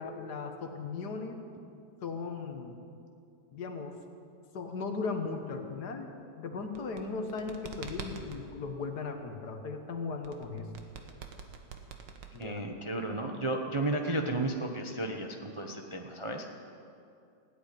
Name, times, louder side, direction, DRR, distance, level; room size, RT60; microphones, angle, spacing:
voice 1, 0.0-1.4 2.0-2.8 3.5-4.0 4.5-10.7 12.3-12.6, left 4 dB, 65° left, 5 dB, 1.8 m, -37 dB
sound 1, 6.6-8.4 10.2-12.8, right 6 dB, 80° right, 1.9 m, -45 dB
voice 2, 12.4-16.6, right 2 dB, 25° right, 2 dB, 0.7 m, -33 dB
16.5 x 8.4 x 10.0 m, 2.5 s
omnidirectional pair, 1.9 m